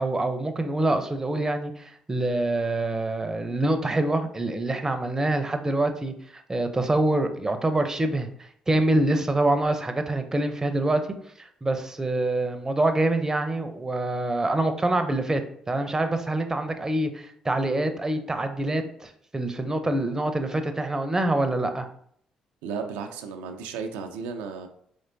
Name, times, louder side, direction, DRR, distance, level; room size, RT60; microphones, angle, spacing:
voice 1, 0.0-6.1 6.5-8.3 8.7-11.0 11.4-15.4 15.7-21.9, right 2 dB, 20° right, 7 dB, 0.6 m, -25 dB
voice 2, 22.6-24.7, right 5 dB, 85° right, 4 dB, 0.4 m, -34 dB
4.3 x 3.2 x 2.6 m, 0.64 s
hypercardioid pair, 50°, 3 cm